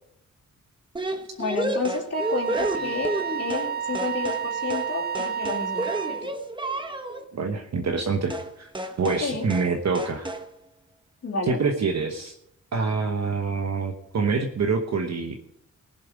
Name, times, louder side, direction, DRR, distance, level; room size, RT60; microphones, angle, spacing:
sound 1, 1.0-3.7 4.0-4.5 4.7-4.9 5.2-7.2 8.3-8.5 8.8-9.3 9.5-9.7 10.0-10.5, right 2 dB, 15° right, 1.1 m, -30 dB
voice 1, 1.4-5.9 6.2-6.3 9.2-9.5 11.2-11.6, left 4 dB, 50° left, -6 dB, 2.8 m, -30 dB
Wind instrument woodwind instrument, 2.1-6.3, right 7 dB, 30° right, 0.5 m, -30 dB
voice 2, 7.3-8.7 9.0-10.3 11.5-12.4 12.7-15.4, right 4 dB, 55° right, 4 dB, 1.1 m, -26 dB
19.5 x 7.5 x 5.2 m, 0.76 s
wide cardioid pair, 125°, 32 cm